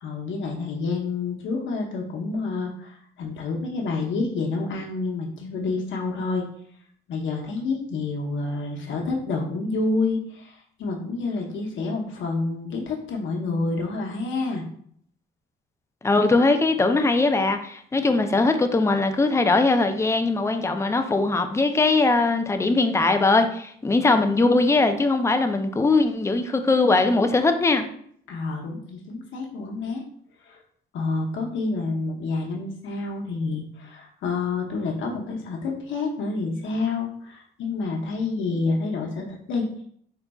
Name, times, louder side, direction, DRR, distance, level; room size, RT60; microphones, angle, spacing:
voice 1, 0.0-6.4 7.1-14.6 28.3-30.0 30.5-30.6 30.9-39.7, left 3 dB, 75° left, 0 dB, 0.9 m, -28 dB
voice 2, 16.0-27.8, left 3 dB, 15° left, 7 dB, 0.4 m, -20 dB
4.0 x 3.8 x 2.3 m, 0.63 s
cardioid pair, 90°, 20 cm